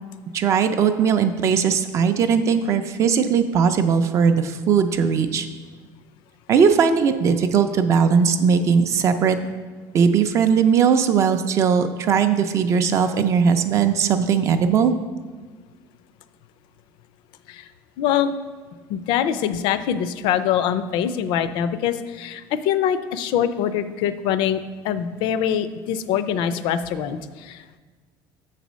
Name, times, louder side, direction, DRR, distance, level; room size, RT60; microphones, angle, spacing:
voice 1, 0.3-5.5 6.5-9.4 9.9-14.9, right 6 dB, 35° right, 8 dB, 0.4 m, -19 dB
voice 2, 18.0-18.3 18.9-27.8, left 9 dB, 60° left, 12 dB, 0.4 m, -24 dB
6.8 x 4.1 x 6.1 m, 1.5 s
cardioid pair, 170°, 9 cm